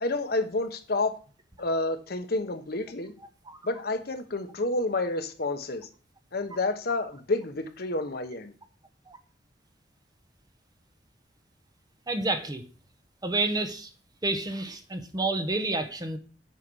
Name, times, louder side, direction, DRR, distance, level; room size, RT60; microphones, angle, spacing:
voice 1, 0.0-1.1 1.6-3.1 3.6-5.9 6.3-8.5, left 2 dB, 60° left, 7 dB, 1.2 m, -29 dB
voice 2, 12.1-12.6 13.2-13.9 14.2-16.2, right 2 dB, 20° right, 7 dB, 1.0 m, -29 dB
8.3 x 5.5 x 6.3 m, 0.39 s
head